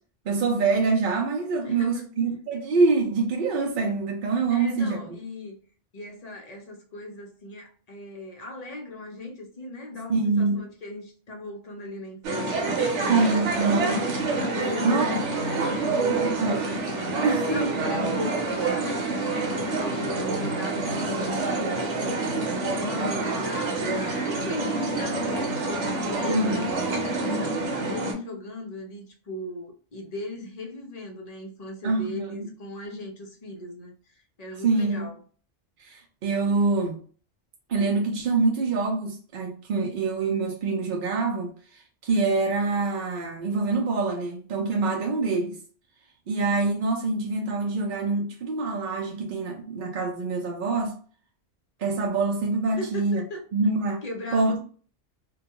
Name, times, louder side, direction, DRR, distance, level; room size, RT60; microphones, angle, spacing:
voice 1, 0.3-5.1 10.1-10.6 13.1-14.1 14.8-15.1 16.4-16.7 17.2-17.7 18.1-18.2 26.3-26.6 31.8-32.5 34.6-35.1 35.8-37.0 37.7-45.6 46.3-51.0 51.8-53.2 53.5-54.0 54.3-54.6, right 3 dB, 60° right, 0.6 m, -25 dB
voice 2, 1.6-2.3 4.5-5.6 5.9-13.1 14.6-15.3 15.9-16.3 17.5-35.2 52.8-53.4 54.0-54.6, left 2 dB, 45° left, 0.5 m, -38 dB
sound 1, 12.2-28.1, right 3 dB, 75° right, 1.0 m, -27 dB
2.2 x 2.2 x 2.9 m
omnidirectional pair, 1.2 m